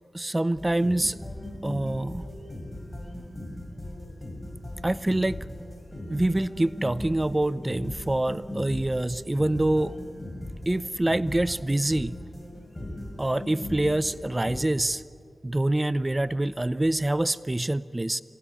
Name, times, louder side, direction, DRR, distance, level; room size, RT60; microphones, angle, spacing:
voice 1, 0.1-1.2 1.6-2.3 4.8-5.4 6.1-10.0 10.7-12.2 13.2-15.0 15.4-18.2, right 1 dB, 25° right, 17 dB, 0.7 m, -26 dB
sound 1, 0.6-14.6, left 1 dB, 30° left, 6.7 m, -38 dB
26.0 x 20.0 x 9.8 m, 2.2 s
cardioid pair, 40°, 0 cm